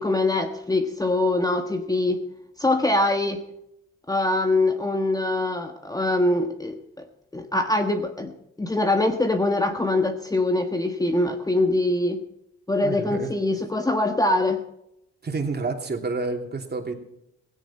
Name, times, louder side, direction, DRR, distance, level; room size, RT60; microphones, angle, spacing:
voice 1, 0.0-2.2 2.6-3.4 4.1-7.1 7.3-8.3 8.6-12.2 12.7-14.6, left 2 dB, 10° left, 6 dB, 1.3 m, -23 dB
voice 2, 12.8-13.3 15.2-16.9, right 3 dB, 35° right, 3 dB, 3.1 m, -29 dB
17.0 x 16.5 x 4.3 m, 0.81 s
cardioid pair, 90°, 30 cm